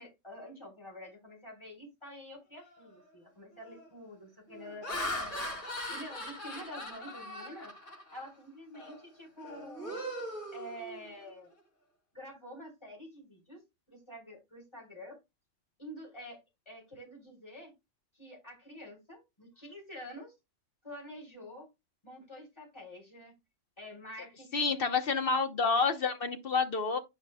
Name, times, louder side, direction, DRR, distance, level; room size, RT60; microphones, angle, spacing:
voice 1, 0.0-7.8 8.1-10.0 10.5-11.5 12.1-13.6 13.9-15.2 15.8-16.4 16.7-17.7 18.1-20.3 20.8-21.7 22.0-23.3 23.8-24.9, equal, 20° left, 3.8 m, -48 dB
Laughter, 2.7-3.0 3.6-3.9 4.5-8.3 8.7-9.0 9.4-11.3, equal, 85° left, 2.9 m, -40 dB
voice 2, 24.5-27.0, left 4 dB, 50° left, 1.1 m, -29 dB
11.0 x 5.0 x 2.2 m
omnidirectional pair, 1.3 m